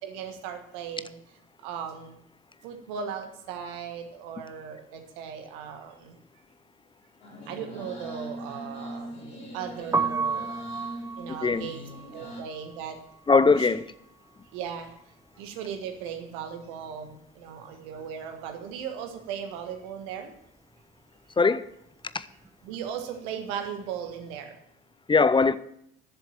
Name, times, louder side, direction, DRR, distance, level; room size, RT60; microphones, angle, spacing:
voice 1, 0.0-1.2 1.6-2.2 2.6-6.1 7.5-9.1 9.5-10.5 11.2-11.8 12.1-13.0 13.5-13.7 14.5-14.9 15.4-20.3 22.6-24.6, right 8 dB, 65° right, 1.6 m, -37 dB
sound 1, 7.2-12.4, equal, 80° left, 3.3 m, -40 dB
Piano, 9.8-15.7 16.0-17.6 17.9-24.3, right 4 dB, 10° right, 1.0 m, -35 dB
voice 2, 11.3-11.7 13.3-13.8 21.4-21.7 22.1-22.3 25.1-25.6, left 4 dB, 15° left, 0.5 m, -21 dB
11.0 x 7.2 x 7.2 m
figure-of-eight pair, 50°, 30 cm